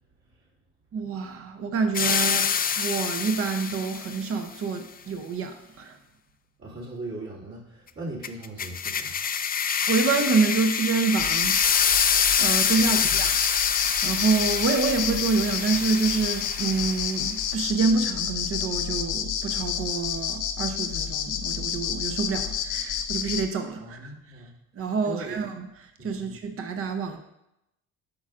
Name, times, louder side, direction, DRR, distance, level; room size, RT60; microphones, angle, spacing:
voice 1, 0.9-2.5 2.8-6.0 9.9-11.6 12.4-24.1 24.7-25.7 26.0-27.2, right 4 dB, 45° right, 6 dB, 0.7 m, -27 dB
sound 1, 1.9-4.3 8.2-17.2, left 7 dB, 30° left, 0.4 m, -26 dB
voice 2, 6.6-9.2 12.8-13.2 23.8-24.5 25.0-25.4 26.0-26.4, right 2 dB, 60° right, -6 dB, 2.5 m, -39 dB
sound 2, 11.2-23.5, left 8 dB, 80° left, 0.6 m, -29 dB
8.6 x 6.1 x 2.5 m, 0.85 s
cardioid pair, 90°, 30 cm